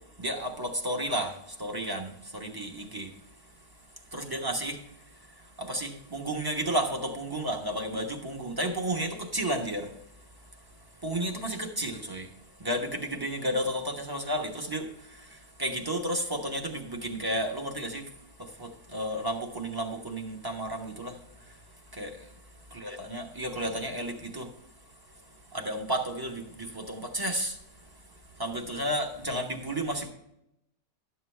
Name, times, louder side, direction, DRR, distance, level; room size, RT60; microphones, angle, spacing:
voice 1, 0.2-3.1 4.1-4.8 5.6-9.9 11.0-12.3 12.6-14.9 15.6-18.0 18.6-21.2 21.9-22.2 22.7-24.5 25.5-27.6 28.4-30.1, right 1 dB, 15° right, 1.1 m, -32 dB
12.0 x 7.9 x 3.3 m
omnidirectional pair, 1.5 m